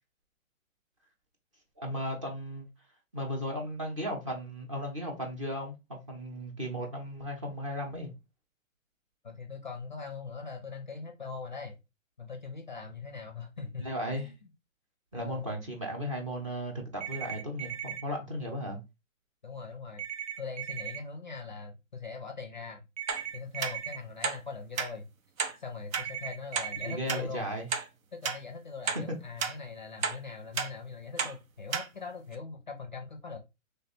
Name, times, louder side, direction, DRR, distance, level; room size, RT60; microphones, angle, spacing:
voice 1, 1.8-2.7 3.1-8.1 13.8-14.3 15.1-18.8 26.8-27.7 28.9-29.0, equal, 25° right, 0.7 m, -35 dB
voice 2, 9.2-11.8 12.2-14.3 15.1-15.5 19.4-20.0 20.4-22.8 23.3-25.1 25.6-27.5 28.1-33.4, left 4 dB, 35° left, 0.4 m, -41 dB
sound 1, 17.0-18.0 20.0-21.0 23.0-24.0 25.9-26.9, right 9 dB, 60° right, 0.9 m, -38 dB
sound 2, 23.1-23.2 23.6-23.7 24.2-24.4 24.8-24.9 25.4-25.6 25.9-26.1 26.5-26.7 27.1-27.2 27.7-27.9 28.2-28.4 28.9-29.0 29.4-29.6 30.0-30.2 30.6-30.7 31.2-31.3 31.7-31.9 32.3-32.4, right 5 dB, 85° right, 0.8 m, -31 dB
3.2 x 2.1 x 4.2 m
hypercardioid pair, 165°, 40 cm